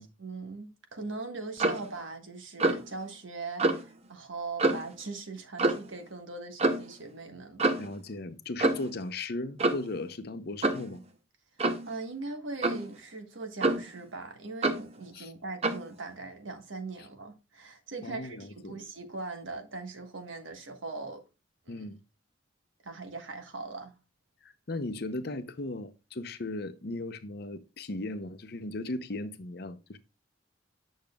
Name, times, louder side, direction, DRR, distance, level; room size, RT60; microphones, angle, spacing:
voice 1, 0.2-7.8 11.8-21.2 21.6-21.8 22.8-23.9, right 3 dB, 85° right, 1.4 m, -40 dB
Clock, 1.6-1.9 2.6-2.9 3.6-3.8 4.6-4.9 5.6-5.9 6.6-6.8 7.6-7.9 8.6-8.9 9.6-9.9 10.6-10.9 11.6-11.9 12.6-12.9 13.6-14.0 14.6-14.9 15.6-15.9, right 2 dB, 35° right, 0.8 m, -27 dB
voice 2, 7.8-11.0 15.1-15.3 18.0-18.8 21.7-22.0 24.4-30.0, left 2 dB, 55° left, 0.7 m, -37 dB
8.7 x 6.3 x 2.3 m
head